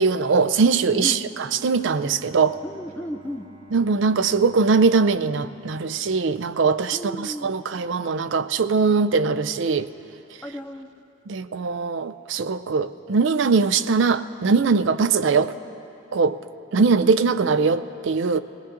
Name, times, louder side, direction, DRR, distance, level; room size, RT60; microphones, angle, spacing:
voice 1, 0.0-2.6 3.7-9.9 11.3-15.6 16.1-16.4 16.7-18.4, right 4 dB, 65° right, 13 dB, 0.4 m, -21 dB
Bowed string instrument, 1.1-6.0, right 2 dB, 30° right, 1.2 m, -51 dB
voice 2, 2.6-3.5 6.9-7.5 10.4-10.9, equal, 10° left, 4 dB, 0.4 m, -34 dB
20.0 x 18.0 x 2.6 m, 2.7 s
head